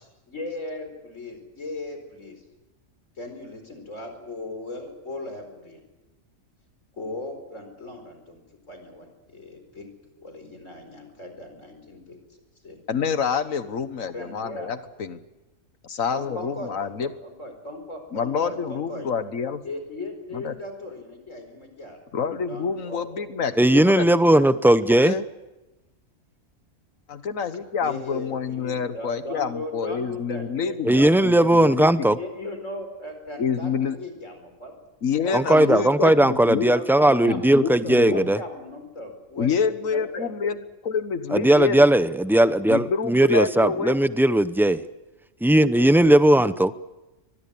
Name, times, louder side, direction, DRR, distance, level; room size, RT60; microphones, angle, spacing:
voice 1, 0.3-2.4 3.2-5.8 7.0-9.9 10.2-12.2 12.6-12.8 14.1-14.7 16.1-19.1 19.6-22.0 22.5-23.3 27.8-31.8 32.1-34.7 35.2-36.2 36.7-39.5 39.8-40.3, left 2 dB, 70° left, 6 dB, 4.9 m, -37 dB
voice 2, 12.9-15.2 15.8-17.1 18.1-19.6 20.3-20.5 22.1-24.1 25.0-25.2 27.1-32.2 33.4-34.0 35.0-36.7 37.3-38.3 39.4-41.8 42.7-44.0, left 6 dB, 85° left, 11 dB, 1.7 m, -27 dB
voice 3, 23.6-25.2 30.8-32.2 35.3-38.4 41.3-44.8 45.4-46.7, right 1 dB, 5° right, 13 dB, 0.3 m, -18 dB
24.0 x 20.0 x 8.7 m, 1.0 s
omnidirectional pair, 1.4 m